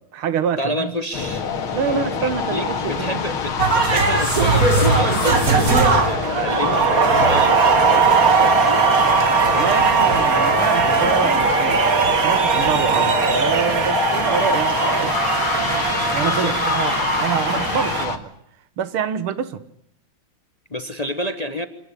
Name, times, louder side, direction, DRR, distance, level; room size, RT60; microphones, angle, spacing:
voice 1, 0.0-0.9 1.7-3.2 9.5-11.9 12.2-15.2 16.1-18.3 18.8-19.6, right 8 dB, 90° right, 2.1 m, -26 dB
voice 2, 0.6-1.4 1.9-6.9 7.1-8.9 12.9-13.2 16.2-16.6 20.7-21.7, left 1 dB, 25° left, 1.0 m, -29 dB
sound 1, 1.1-18.2, left 6 dB, 85° left, 2.6 m, -26 dB
sound 2, 2.3-9.2, right 3 dB, 65° right, 5.9 m, -39 dB
sound 3, 3.6-18.1, right 4 dB, 45° right, 2.2 m, -19 dB
25.5 x 18.5 x 9.9 m
omnidirectional pair, 2.3 m